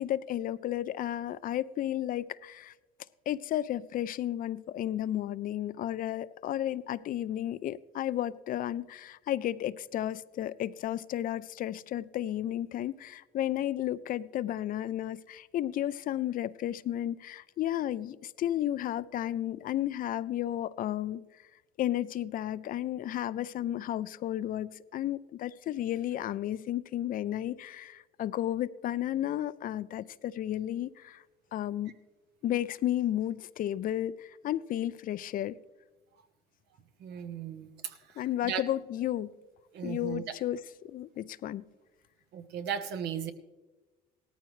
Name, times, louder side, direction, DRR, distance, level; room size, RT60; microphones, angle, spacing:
voice 1, 0.0-2.7 3.3-21.2 21.8-31.2 31.5-31.9 32.4-35.6 38.2-39.3 39.8-41.7, left 12 dB, 55° left, 17 dB, 0.4 m, -33 dB
voice 2, 37.0-38.0 38.4-38.6 39.7-40.2 42.3-43.3, right 8 dB, 80° right, 8 dB, 1.1 m, -36 dB
17.5 x 13.5 x 3.2 m, 1.2 s
cardioid pair, 110°, 17 cm